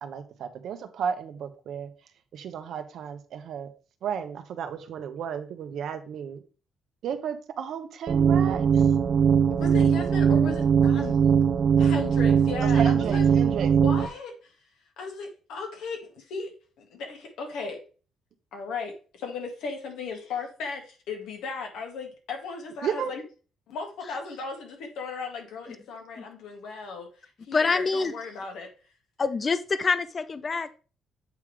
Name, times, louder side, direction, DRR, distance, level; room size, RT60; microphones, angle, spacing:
voice 1, 0.0-1.9 2.3-3.7 4.0-6.4 7.0-8.8 12.7-13.7 22.8-23.1, right 8 dB, 70° right, 1.1 m, -33 dB
sound 1, 8.1-14.1, right 7 dB, 50° right, 0.6 m, -21 dB
voice 2, 9.5-11.4 11.8-13.3 13.8-14.5 15.0-16.5 16.8-17.8 18.5-23.2 23.7-28.7, left 4 dB, 85° left, 1.9 m, -36 dB
voice 3, 27.5-28.1 29.2-30.8, left 4 dB, 35° left, 0.5 m, -26 dB
8.3 x 3.6 x 4.8 m
cardioid pair, 90°, 0 cm